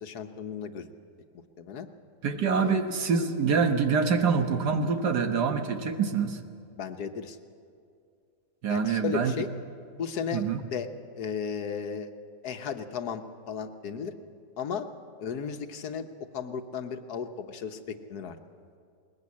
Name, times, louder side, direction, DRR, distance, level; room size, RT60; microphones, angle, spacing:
voice 1, 0.0-0.9 1.6-1.9 2.6-2.8 6.8-7.4 8.7-9.5 9.9-10.4 10.7-10.9 11.2-12.1 12.4-14.1 14.6-14.9 15.2-18.4, left 6 dB, 70° left, 7 dB, 1.5 m, -35 dB
voice 2, 2.2-6.4 8.6-9.3 10.3-10.6, right 5 dB, 75° right, 6 dB, 1.9 m, -25 dB
21.0 x 20.0 x 8.5 m, 2.4 s
omnidirectional pair, 1.8 m